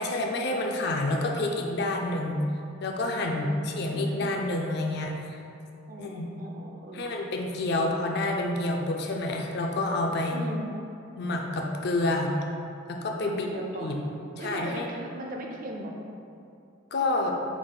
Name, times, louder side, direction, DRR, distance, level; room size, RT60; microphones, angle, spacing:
voice 1, 0.0-2.4 2.8-5.4 6.0-6.3 6.9-10.4 11.2-12.3 12.9-13.5 13.8-14.0 14.4-14.9 16.9-17.3, left 2 dB, 50° left, 1 dB, 0.4 m, -28 dB
voice 2, 1.6-2.2 3.3-4.2 5.9-7.1 7.7-8.0 10.3-10.7 13.2-14.0 14.4-15.9, right 1 dB, 40° right, 0 dB, 0.4 m, -39 dB
4.7 x 2.4 x 3.7 m, 2.5 s
head